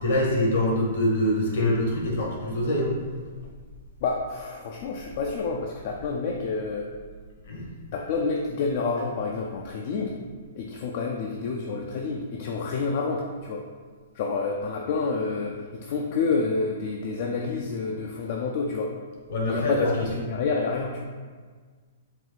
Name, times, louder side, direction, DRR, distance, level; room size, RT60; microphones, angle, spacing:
voice 1, 0.0-2.9 7.5-7.7 19.3-20.0, left 1 dB, 70° left, -2 dB, 1.2 m, -24 dB
voice 2, 4.0-6.9 7.9-10.2 10.6-13.6 14.1-19.0 19.5-21.0, left 4 dB, 55° left, 0 dB, 0.4 m, -28 dB
4.5 x 2.4 x 3.9 m, 1.5 s
hypercardioid pair, 135°, 0 cm